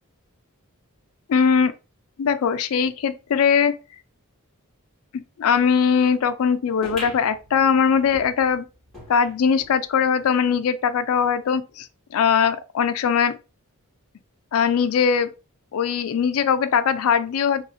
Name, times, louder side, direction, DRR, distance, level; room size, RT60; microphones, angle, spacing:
voice 1, 1.3-1.7 2.2-3.8 5.1-8.7 9.1-13.4 14.5-15.3 15.7-17.6, left 7 dB, 70° left, 0.3 m, -21 dB
sound 1, 6.8-9.8 10.2-10.3 10.5-10.6 11.4-11.5, left 1 dB, ahead, 1.9 m, -40 dB
3.9 x 2.4 x 2.5 m
head